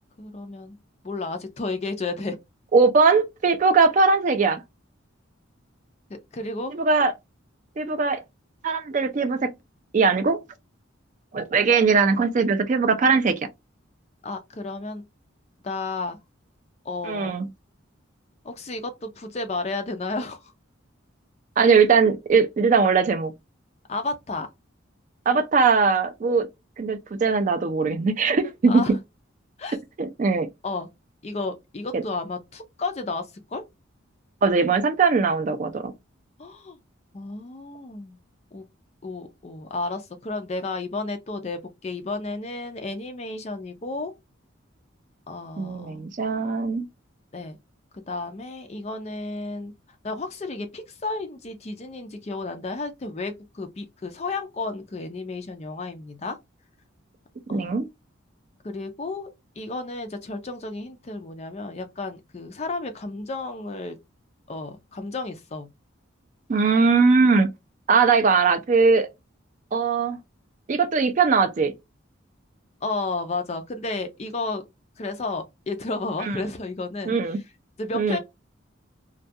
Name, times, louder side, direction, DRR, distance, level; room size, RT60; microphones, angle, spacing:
voice 1, 0.2-0.8 1.0-2.4 6.1-6.8 14.2-15.0 15.6-16.2 16.8-17.3 18.4-20.5 23.9-24.5 28.7-29.0 29.6-29.8 30.6-30.9 31.2-33.6 36.4-36.8 37.1-38.2 38.5-38.6 39.0-44.1 45.3-46.1 47.3-47.6 47.9-49.7 50.0-56.4 57.5-57.8 58.6-59.3 59.6-64.0 64.5-65.7 72.8-74.6 75.0-77.2 77.8-78.2, left 3 dB, 30° left, 0.4 m, -32 dB
voice 2, 2.7-4.6 6.7-7.1 7.8-8.2 8.6-9.5 9.9-10.4 11.3-13.4 17.0-17.5 21.6-23.3 25.3-26.5 26.8-29.0 30.0-30.5 31.9-32.0 34.4-35.9 45.6-46.9 57.5-57.9 66.5-67.5 67.9-69.1 69.7-70.2 70.7-71.7 76.2-76.4 77.1-77.4 77.9-78.2, right 4 dB, 40° right, 0.4 m, -20 dB
2.3 x 2.2 x 2.6 m
head